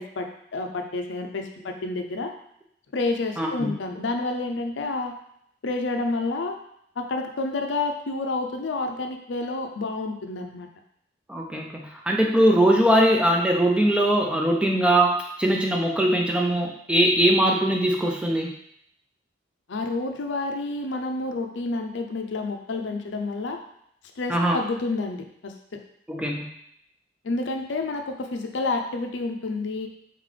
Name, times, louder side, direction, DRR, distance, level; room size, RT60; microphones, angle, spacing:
voice 1, 0.0-2.3 2.9-5.2 5.6-6.6 7.0-10.7 19.7-23.6 24.2-25.8 27.2-29.9, left 3 dB, 85° left, 4 dB, 0.5 m, -29 dB
voice 2, 3.4-3.7 11.3-18.5 24.3-24.6 26.1-26.5, right 1 dB, 5° right, 0 dB, 0.4 m, -21 dB
4.0 x 3.9 x 3.2 m, 0.73 s
head